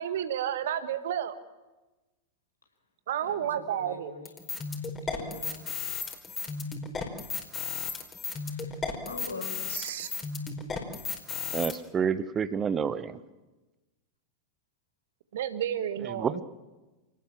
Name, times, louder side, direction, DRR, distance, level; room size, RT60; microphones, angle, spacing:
voice 1, 0.0-1.4 3.1-4.1 9.7-10.1 15.3-16.4, right 10 dB, 60° right, 11 dB, 1.8 m, -31 dB
voice 2, 3.2-4.3 5.1-5.7 8.4-8.7 9.0-9.6, left 3 dB, 80° left, 3 dB, 5.3 m, -42 dB
sound 1, 4.2-11.7, left 5 dB, 20° left, 4.5 m, -34 dB
voice 3, 11.5-13.2 16.0-16.4, right 7 dB, 20° right, 15 dB, 1.0 m, -29 dB
28.5 x 18.0 x 7.4 m, 1.2 s
figure-of-eight pair, 90°, 0 cm